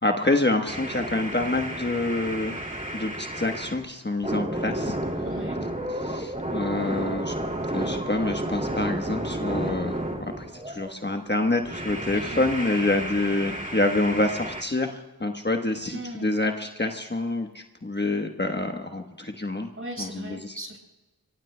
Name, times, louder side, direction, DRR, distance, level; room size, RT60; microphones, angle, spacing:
voice 1, 0.0-2.6 2.9-5.0 6.0-7.3 7.7-19.7 20.0-20.4, left 2 dB, 30° left, 3 dB, 1.1 m, -27 dB
sound 1, 0.7-3.8 4.2-10.9 11.6-14.6, right 1 dB, 20° right, 2.5 m, -32 dB
voice 2, 5.2-5.6 12.1-12.5 15.8-16.3 19.8-20.8, right 1 dB, 35° right, 1 dB, 5.9 m, -38 dB
26.5 x 24.0 x 2.2 m, 1.1 s
wide cardioid pair, 40°, 37 cm